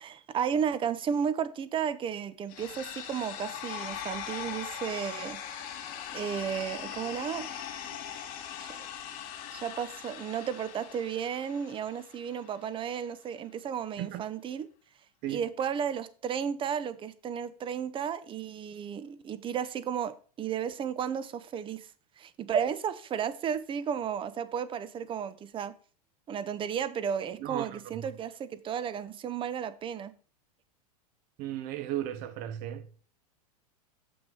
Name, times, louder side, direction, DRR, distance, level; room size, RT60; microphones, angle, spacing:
voice 1, 0.0-5.4 6.1-7.6 7.8-8.0 8.6-8.9 9.5-14.7 15.3-21.9 22.2-25.7 26.3-30.1, right 8 dB, 25° right, 0.8 m, -33 dB
sound 1, 2.5-12.5, left 9 dB, 45° left, 2.7 m, -41 dB
voice 2, 27.4-28.1 31.4-32.9, right 12 dB, 50° right, 1.1 m, -35 dB
7.3 x 6.1 x 4.9 m
hypercardioid pair, 100°, 20 cm